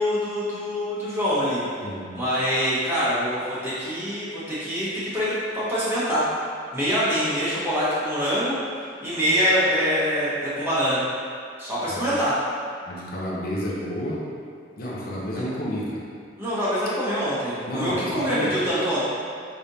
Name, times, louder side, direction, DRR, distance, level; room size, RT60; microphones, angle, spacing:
voice 1, 0.0-1.6 2.1-6.2 6.7-8.6 9.0-11.0 11.6-12.3 16.4-19.0, equal, 15° right, -12 dB, 1.3 m, -24 dB
voice 2, 12.9-14.2 14.8-16.0 17.7-18.6, equal, 50° left, -5 dB, 0.6 m, -30 dB
5.1 x 3.4 x 2.7 m, 2.2 s
head